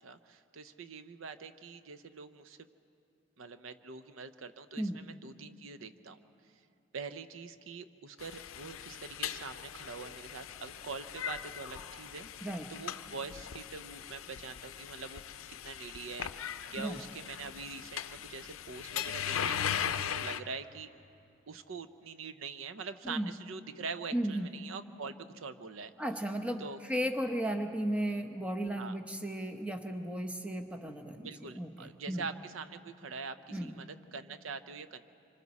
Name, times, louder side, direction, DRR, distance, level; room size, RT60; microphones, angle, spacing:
voice 1, 0.0-2.6 3.4-6.2 6.9-12.3 12.7-15.2 15.6-20.9 21.5-25.9 26.6-26.8 28.8-29.0 31.2-35.0, right 5 dB, 80° right, 11 dB, 0.7 m, -44 dB
sound 1, 8.2-20.4, left 9 dB, 90° left, 0.5 m, -39 dB
voice 2, 12.4-12.7 16.8-17.0 23.0-23.3 24.1-24.5 26.0-32.2 33.5-33.8, right 1 dB, 5° right, 5 dB, 0.8 m, -35 dB
26.0 x 25.0 x 4.2 m, 2.6 s
head